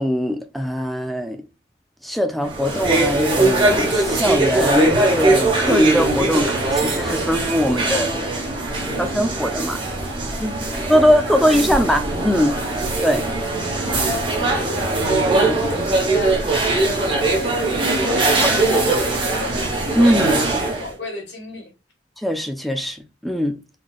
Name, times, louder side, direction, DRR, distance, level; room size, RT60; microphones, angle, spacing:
voice 1, 0.0-1.4 2.0-8.2 9.0-9.8 10.4-12.6 13.0-13.2 15.3-15.6 18.4-18.5 20.0-20.4 22.2-23.6, equal, ahead, 0.5 m, -21 dB
sound 1, 2.4-20.9, right 2 dB, 30° right, 1.0 m, -20 dB
voice 2, 14.3-14.9 15.2-19.6 20.4-21.7, left 2 dB, 70° left, 1.6 m, -34 dB
3.9 x 3.3 x 2.3 m
head